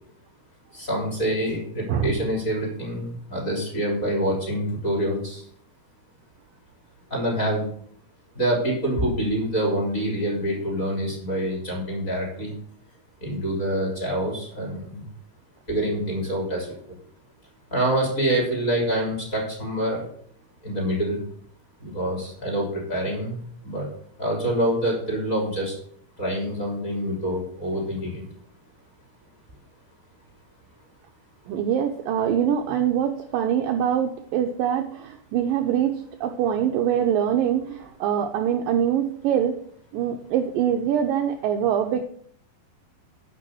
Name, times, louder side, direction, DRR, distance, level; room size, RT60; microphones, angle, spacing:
voice 1, 0.7-5.4 7.1-7.7 8.4-12.5 13.2-15.0 15.7-16.7 17.7-20.0 20.6-21.2 21.8-23.4 23.7-23.9 24.2-25.8 26.2-28.2, right 1 dB, 20° left, -2 dB, 3.5 m, -26 dB
voice 2, 31.5-39.5 39.9-42.0, right 9 dB, 85° right, 4 dB, 1.9 m, -24 dB
9.4 x 6.2 x 7.9 m, 0.63 s
omnidirectional pair, 5.0 m